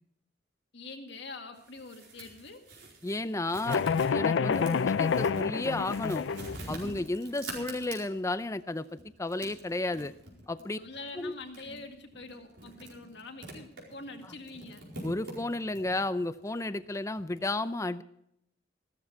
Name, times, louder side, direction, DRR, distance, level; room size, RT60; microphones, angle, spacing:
voice 1, 0.7-2.7 10.8-14.8, left 3 dB, 70° left, 4 dB, 2.0 m, -45 dB
sound 1, 1.5-8.4 8.8-17.4, right 2 dB, 75° right, 4.8 m, -46 dB
voice 2, 3.0-3.8 4.1-6.3 6.7-10.1 10.5-10.8 11.2-11.3 15.0-18.0, left 2 dB, 15° left, 13 dB, 0.5 m, -33 dB
sound 2, 3.7-6.6, left 6 dB, 85° left, 0.4 m, -28 dB
15.5 x 13.5 x 4.6 m, 0.73 s
head